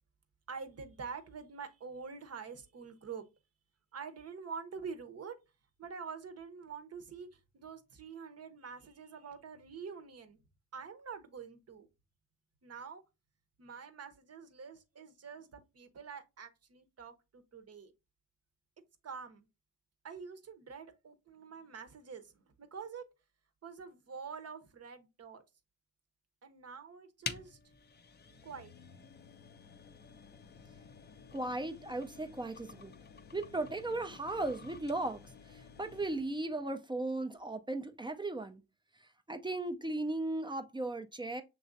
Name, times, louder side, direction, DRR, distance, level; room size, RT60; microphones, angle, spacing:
voice 1, 0.5-3.3 3.9-5.4 5.8-10.4 10.7-11.9 12.6-13.0 13.6-17.9 19.0-19.5 20.0-23.0 23.6-25.4 26.4-27.7 28.4-28.7, right 5 dB, 45° right, 0.9 m, -46 dB
sound 1, 27.2-36.4, left 5 dB, 30° left, 0.5 m, -49 dB
voice 2, 31.3-33.0 33.3-38.6 39.0-41.4, right 2 dB, 15° right, 0.5 m, -37 dB
6.1 x 3.1 x 2.6 m
supercardioid pair, 60°, 33 cm